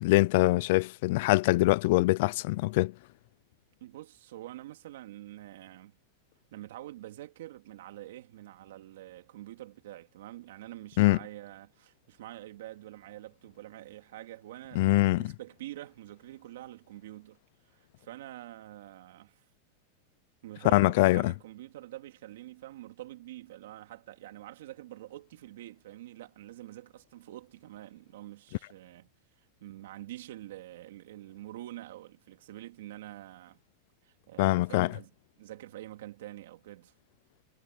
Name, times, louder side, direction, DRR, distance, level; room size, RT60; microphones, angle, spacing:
voice 1, 0.0-2.9 11.0-11.2 14.7-15.3 20.7-21.3 34.4-34.9, left 20 dB, 50° left, 0.4 m, -24 dB
voice 2, 3.8-6.0 6.5-17.4 17.7-19.4 20.4-29.1 29.6-33.6 34.0-35.1 35.4-36.9, right 15 dB, 70° right, 2.8 m, -46 dB
supercardioid pair, 165°, 0 cm